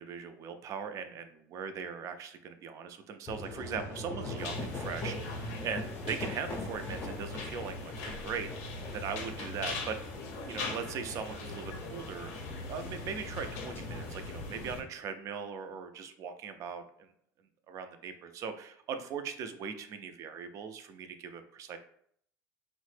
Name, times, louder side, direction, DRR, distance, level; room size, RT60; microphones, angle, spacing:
voice 1, 0.0-10.1 10.5-12.3 12.7-17.1 17.7-21.8, right 6 dB, 45° right, 8 dB, 0.4 m, -40 dB
sound 1, 3.3-14.7, left 1 dB, 30° left, 0.5 m, -41 dB
sound 2, 4.4-14.8, left 4 dB, 85° left, 0.6 m, -43 dB
3.0 x 2.0 x 3.2 m, 0.66 s
supercardioid pair, 120°, 7 cm